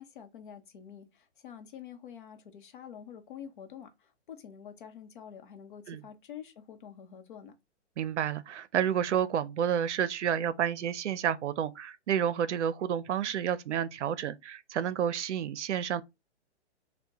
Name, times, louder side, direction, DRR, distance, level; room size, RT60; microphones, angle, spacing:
voice 1, 0.0-7.5, left 8 dB, 45° left, 0.8 m, -47 dB
voice 2, 8.0-16.0, right 9 dB, 80° right, 0.6 m, -30 dB
5.7 x 2.2 x 2.8 m
hypercardioid pair, 160°, 35 cm